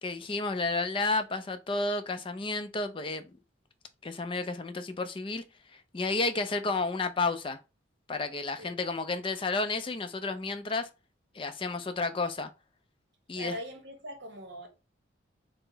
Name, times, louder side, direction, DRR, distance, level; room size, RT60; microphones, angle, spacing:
voice 1, 0.0-3.3 4.0-5.4 5.7-7.6 8.1-10.9 11.3-12.5 13.3-13.6, left 3 dB, 25° left, 0.4 m, -31 dB
voice 2, 13.3-14.7, right 1 dB, 60° right, 1.0 m, -41 dB
4.5 x 2.0 x 3.9 m
head